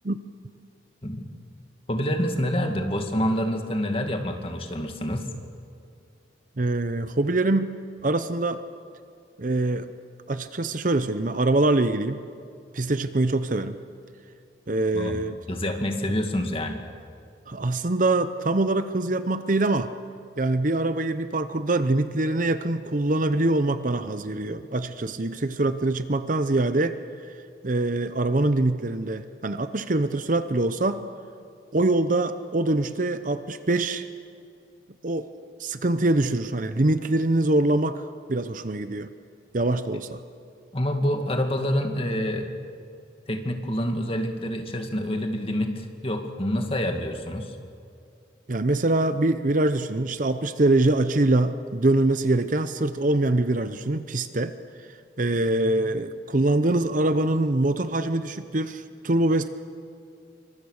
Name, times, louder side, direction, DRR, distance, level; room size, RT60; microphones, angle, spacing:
voice 1, 1.9-5.3 14.9-15.2 15.5-16.8 40.7-42.5 43.3-47.6, equal, 30° left, 4 dB, 2.2 m, -27 dB
voice 2, 6.6-7.7 8.0-8.6 9.4-9.9 10.3-12.2 12.7-13.8 14.7-15.4 17.5-19.9 20.4-27.0 27.3-27.4 27.6-31.0 31.7-34.1 35.0-35.3 35.6-38.0 38.3-39.1 39.5-40.2 48.5-54.5 55.2-59.5, right 2 dB, 45° right, 11 dB, 0.8 m, -24 dB
27.0 x 24.5 x 6.6 m, 2.4 s
head